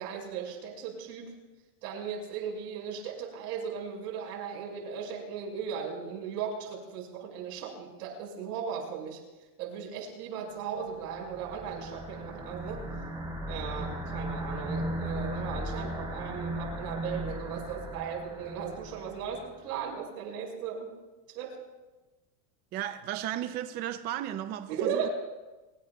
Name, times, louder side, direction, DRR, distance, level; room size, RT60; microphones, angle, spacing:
voice 1, 0.0-1.3 1.8-9.2 9.6-12.8 13.5-20.9 21.3-21.6 24.7-25.1, right 7 dB, 85° right, 5.3 m, -37 dB
sound 1, 10.8-19.4, right 1 dB, 10° right, 6.4 m, -37 dB
voice 2, 22.7-25.1, right 11 dB, 25° right, 0.4 m, -35 dB
24.5 x 20.5 x 2.3 m
supercardioid pair, 150°, 46 cm